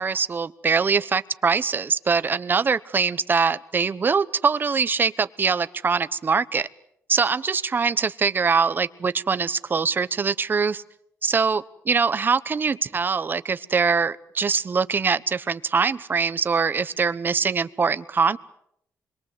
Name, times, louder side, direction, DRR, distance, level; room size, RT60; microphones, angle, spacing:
voice 1, 0.0-6.7 7.1-10.8 11.2-18.4, right 5 dB, 35° right, 14 dB, 1.0 m, -23 dB
27.5 x 22.5 x 8.1 m, 0.74 s
cardioid pair, 105°, 6 cm